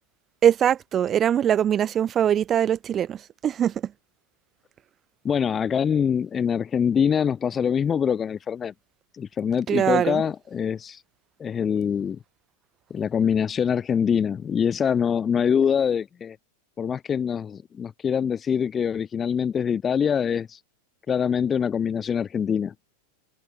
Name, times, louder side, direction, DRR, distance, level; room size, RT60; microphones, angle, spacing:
voice 1, 0.4-3.9 9.7-10.2, right 9 dB, 25° right, 0.9 m, -22 dB
voice 2, 5.2-8.7 9.2-11.0 11.4-12.2 12.9-16.4 16.8-20.6 21.1-22.7, left 7 dB, 20° left, 1.4 m, -24 dB
figure-of-eight pair, 90°, 0 cm